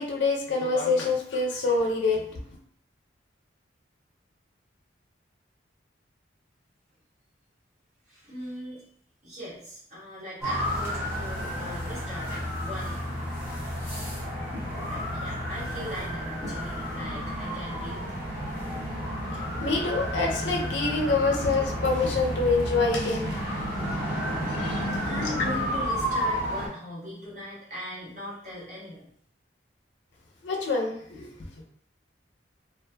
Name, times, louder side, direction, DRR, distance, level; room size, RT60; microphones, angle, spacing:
voice 1, 0.0-2.2 19.6-23.3 24.6-25.1 30.4-31.3, left 3 dB, 70° left, 1 dB, 0.5 m, -26 dB
voice 2, 8.1-8.8 9.2-12.3 12.6-13.0 14.8-18.0 25.1-29.1, left 1 dB, 40° right, -8 dB, 1.2 m, -39 dB
sound 1, 10.4-26.7, equal, 10° right, 0.7 m, -31 dB
2.6 x 2.4 x 2.2 m, 0.65 s
head